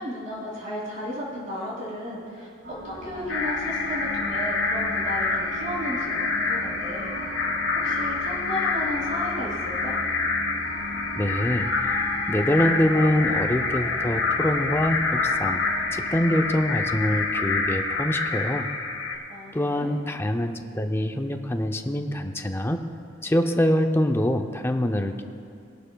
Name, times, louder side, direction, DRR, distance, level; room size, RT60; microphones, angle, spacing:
voice 1, 0.0-7.1 7.7-10.0 19.3-20.0, left 1 dB, 40° right, -5 dB, 2.8 m, -34 dB
sound 1, 2.6-18.9, equal, 75° right, 2.1 m, -38 dB
sound 2, 3.3-19.2, left 4 dB, 85° left, 1.1 m, -27 dB
voice 2, 11.2-15.6 15.9-18.7 19.5-22.8 23.2-25.2, left 1 dB, 15° left, 6 dB, 0.5 m, -25 dB
19.5 x 12.0 x 2.3 m, 2.5 s
head